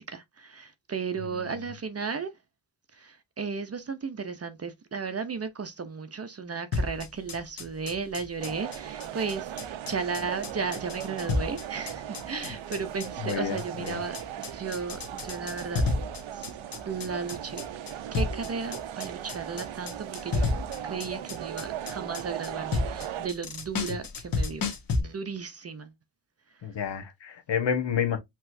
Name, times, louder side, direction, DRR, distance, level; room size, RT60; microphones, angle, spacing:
voice 1, 0.0-2.3 2.9-15.8 16.3-16.5 16.9-17.6 18.1-24.7 24.9-25.9, right 5 dB, 35° right, 0.6 m, -35 dB
voice 2, 1.3-1.6 12.4-12.5 13.2-14.0 26.6-28.2, left 7 dB, 65° left, 1.2 m, -30 dB
sound 1, 6.7-25.0, left 3 dB, 45° left, 1.3 m, -32 dB
sound 2, 8.4-23.3, right 11 dB, 90° right, 0.7 m, -38 dB
5.8 x 3.1 x 2.6 m
wide cardioid pair, 140°, 46 cm